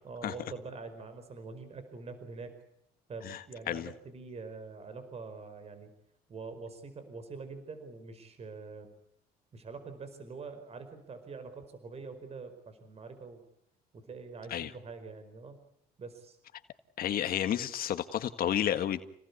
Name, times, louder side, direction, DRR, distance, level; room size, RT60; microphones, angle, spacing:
voice 1, 0.0-2.5 3.1-5.9 6.3-8.9 9.5-13.4 13.9-15.6 16.0-16.4, right 4 dB, 40° right, 4.9 m, -45 dB
voice 2, 3.2-3.9 14.5-14.7 17.0-19.0, left 10 dB, 60° left, 1.7 m, -31 dB
29.5 x 19.0 x 8.5 m
cardioid pair, 110°, 17 cm